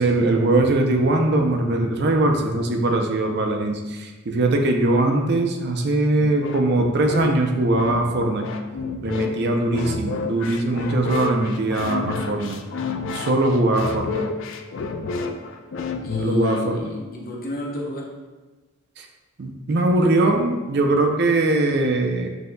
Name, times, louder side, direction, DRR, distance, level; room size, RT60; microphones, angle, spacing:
voice 1, 0.0-8.5 9.0-12.6 13.1-14.3 16.2-16.8 19.0-19.1 19.4-22.3, right 2 dB, 50° right, 3 dB, 0.5 m, -21 dB
sound 1, 6.2-16.8, left 4 dB, 60° left, 0.3 m, -30 dB
voice 2, 16.0-18.2, left 2 dB, 45° left, -1 dB, 0.7 m, -30 dB
7.6 x 2.8 x 2.2 m, 1.2 s
head